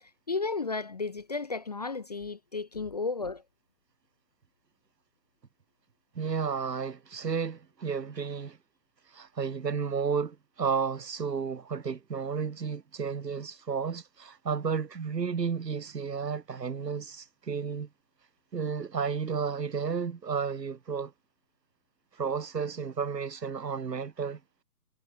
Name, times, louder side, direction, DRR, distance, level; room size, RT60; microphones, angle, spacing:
voice 1, 0.0-3.4, left 4 dB, 30° left, 0.4 m, -33 dB
voice 2, 6.1-8.6 9.1-17.9 18.5-21.1 22.2-24.4, right 6 dB, 85° right, 1.6 m, -32 dB
figure-of-eight pair, 135°, 48 cm